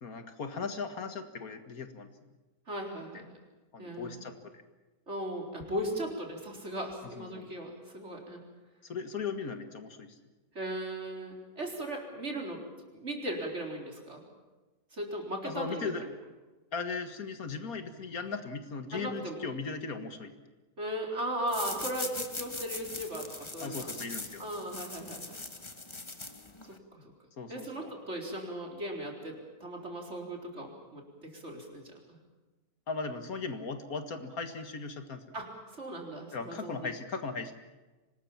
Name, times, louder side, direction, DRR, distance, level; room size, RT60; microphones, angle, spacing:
voice 1, 0.0-2.1 3.7-4.3 7.0-7.5 8.8-10.2 15.4-16.0 16.7-20.4 23.6-24.4 27.4-27.9 32.9-35.4 36.3-37.5, left 4 dB, 75° left, 8 dB, 2.2 m, -38 dB
voice 2, 2.7-3.3 3.8-4.2 5.1-8.4 10.5-12.6 12.9-14.2 14.9-16.1 18.9-19.4 20.8-24.0 24.4-25.4 26.7-27.1 27.5-31.8 35.3-36.9, right 1 dB, 50° right, 1 dB, 4.5 m, -37 dB
sound 1, 21.5-26.8, left 2 dB, 20° left, 1.4 m, -41 dB
25.0 x 19.5 x 7.4 m, 1.2 s
omnidirectional pair, 1.5 m